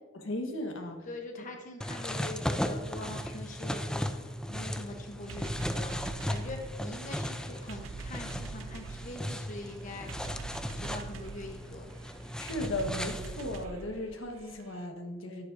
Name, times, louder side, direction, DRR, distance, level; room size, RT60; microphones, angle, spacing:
voice 1, 0.1-1.1 12.4-15.5, left 1 dB, 75° left, 3 dB, 1.3 m, -36 dB
voice 2, 1.1-10.1 10.7-11.8, left 2 dB, 40° left, 3 dB, 0.9 m, -43 dB
sound 1, 1.8-13.6, equal, 5° left, 0.4 m, -36 dB
sound 2, 5.3-14.9, right 5 dB, 85° right, 0.4 m, -45 dB
11.5 x 10.5 x 2.6 m, 1.3 s
head